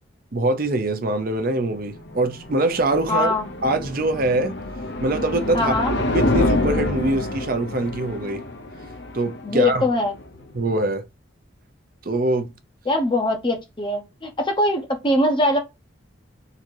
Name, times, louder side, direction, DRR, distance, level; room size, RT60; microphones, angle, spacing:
voice 1, 0.3-3.3 3.6-4.6 5.0-5.7 6.1-8.4 9.1-9.9 10.5-11.0 12.1-12.5, right 2 dB, 45° right, 0.7 m, -23 dB
sound 1, 1.7-10.7, left 2 dB, 60° left, 0.8 m, -27 dB
voice 2, 3.1-3.4 5.5-6.0 9.4-10.1 12.9-15.6, left 1 dB, 25° left, 0.8 m, -22 dB
3.8 x 2.8 x 4.6 m
head